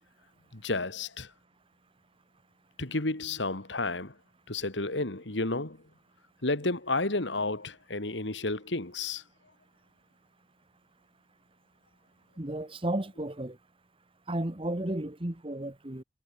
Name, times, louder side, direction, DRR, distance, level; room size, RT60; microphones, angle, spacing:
voice 1, 0.5-1.3 2.8-4.1 4.5-5.8 6.4-9.2, left 2 dB, 75° left, 2.6 m, -31 dB
voice 2, 12.4-13.6 14.3-16.0, right 1 dB, 30° right, 1.4 m, -33 dB
head